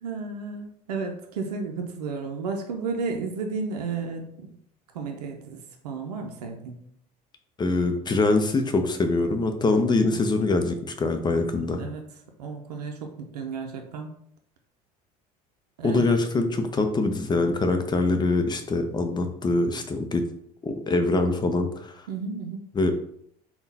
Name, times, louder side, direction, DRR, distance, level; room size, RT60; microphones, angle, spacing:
voice 1, 0.0-4.5 4.9-5.6 5.8-6.8 10.1-10.2 11.8-12.0 12.4-14.1 15.8-16.2 22.1-22.6, right 4 dB, 85° right, 3 dB, 0.5 m, -33 dB
voice 2, 7.6-11.8 15.8-20.2 20.6-21.9 22.7-22.9, left 2 dB, 20° left, 6 dB, 0.6 m, -24 dB
3.7 x 2.3 x 4.0 m, 0.69 s
hypercardioid pair, 80°, 20 cm